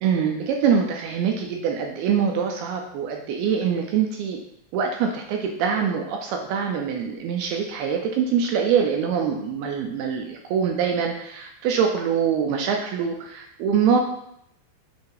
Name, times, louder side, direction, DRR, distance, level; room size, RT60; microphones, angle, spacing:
voice 1, 0.0-4.4 4.7-14.0, right 7 dB, 80° right, 2 dB, 2.3 m, -24 dB
8.0 x 2.8 x 4.8 m, 0.78 s
omnidirectional pair, 5.0 m